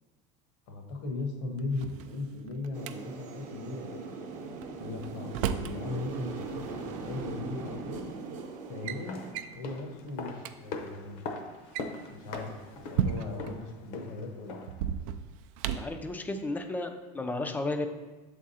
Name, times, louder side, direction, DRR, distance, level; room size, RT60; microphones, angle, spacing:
voice 1, 0.7-4.3 4.8-8.0 8.7-9.2 9.5-11.2 12.1-14.6, left 2 dB, 80° left, 3 dB, 1.2 m, -38 dB
Drawer open or close, 1.6-2.9 4.6-5.8 7.1-7.2 8.0-8.2 8.6-9.0 9.3-9.6 10.1-10.2 10.4-10.5 11.5-13.5 14.7-16.0, right 9 dB, 80° right, 0.4 m, -34 dB
sound 1, 2.7-9.3, right 4 dB, 45° right, 0.8 m, -40 dB
sound 2, 8.9-14.9 15.1-15.2, left 4 dB, 60° left, 0.7 m, -42 dB
voice 2, 15.7-17.9, left 2 dB, 10° left, 6 dB, 0.3 m, -33 dB
7.2 x 3.7 x 4.1 m, 1.2 s
cardioid pair, 155°, 17 cm